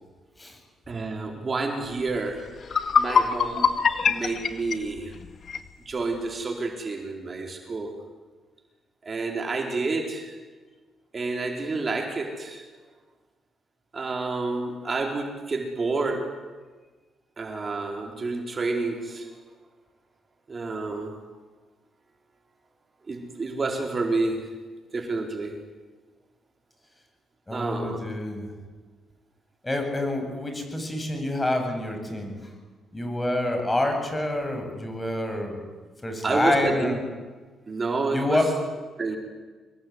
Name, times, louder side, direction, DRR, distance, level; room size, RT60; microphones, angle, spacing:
voice 1, 0.9-2.5 3.0-3.7 4.1-5.1 5.9-7.9 9.0-10.3 11.1-12.7 13.9-16.4 17.4-19.3 20.5-21.1 23.1-24.7 24.9-25.6 27.5-28.0 36.2-37.0 37.7-38.4 39.0-39.2, right 3 dB, 35° right, 3 dB, 4.5 m, -29 dB
sound 1, 2.2-2.3 2.6-5.7, left 6 dB, 50° left, 1.9 m, -23 dB
voice 2, 27.5-28.5 29.6-32.4 32.9-35.6 36.0-37.0 38.1-38.5, left 1 dB, 15° left, 4 dB, 8.0 m, -27 dB
25.5 x 22.0 x 9.8 m, 1.3 s
cardioid pair, 90°, 0 cm